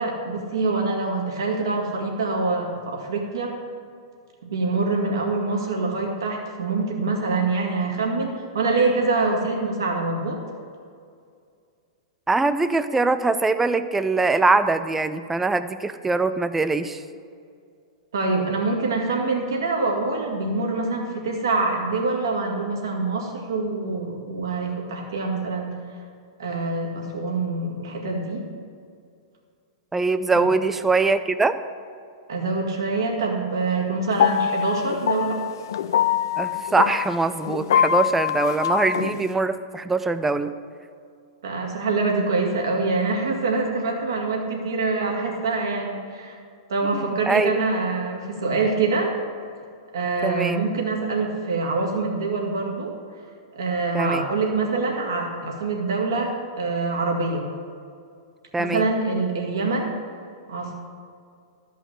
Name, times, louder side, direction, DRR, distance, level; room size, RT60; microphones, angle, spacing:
voice 1, 0.0-3.5 4.4-10.4 18.1-25.7 26.4-28.5 30.4-30.5 32.3-35.4 41.4-46.4 46.7-49.1 49.9-52.9 53.5-57.5 58.6-59.9 60.5-60.7, right 3 dB, 65° right, 0 dB, 2.1 m, -25 dB
voice 2, 12.3-17.0 29.9-31.6 36.4-40.6 47.3-47.6 50.2-50.6 53.9-54.3 58.5-58.9, right 3 dB, 10° right, 11 dB, 0.5 m, -22 dB
sound 1, 34.1-39.3, left 8 dB, 60° left, 0.3 m, -24 dB
13.5 x 5.5 x 6.5 m, 2.3 s
figure-of-eight pair, 100°, 2 cm